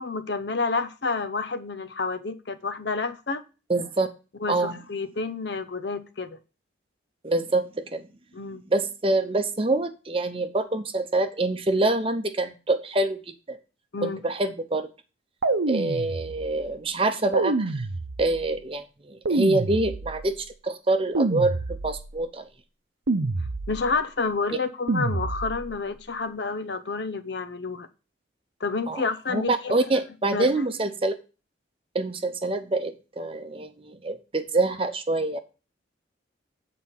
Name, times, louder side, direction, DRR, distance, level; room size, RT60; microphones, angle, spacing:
voice 1, 0.0-3.4 4.4-6.4 8.3-8.6 13.9-14.2 23.7-27.9 28.6-29.7 30.3-30.5, left 4 dB, 65° left, 0.8 m, -29 dB
voice 2, 3.7-4.1 4.5-4.8 7.2-8.1 8.7-13.2 13.5-13.6 14.0-14.9 15.7-17.9 18.2-22.5 28.9-31.1 31.9-35.4, right 2 dB, 30° right, 0.8 m, -26 dB
sound 1, 15.4-16.6 17.3-18.5 19.2-20.4 21.1-22.2 23.1-24.0 24.9-25.8, right 3 dB, 85° right, 0.8 m, -27 dB
8.4 x 4.2 x 5.8 m
head